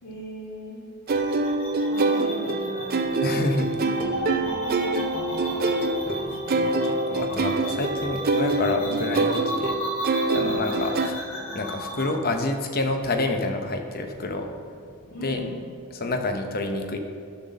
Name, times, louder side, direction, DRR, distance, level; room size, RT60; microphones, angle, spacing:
voice 1, 0.0-0.8 1.9-3.2 3.8-4.4 6.1-7.6 8.8-9.0 10.3-10.8 15.1-15.6, equal, 80° left, -9 dB, 2.0 m, -39 dB
sound 1, 1.1-12.1, equal, 60° left, 2.5 m, -35 dB
sound 2, 1.1-11.1, right 2 dB, 40° right, 0.5 m, -25 dB
voice 2, 3.2-3.8 5.8-9.8 10.3-11.1 11.5-14.8 15.2-15.4 15.9-17.0, left 2 dB, 40° left, 4 dB, 0.8 m, -28 dB
12.0 x 4.1 x 6.4 m, 2.3 s
head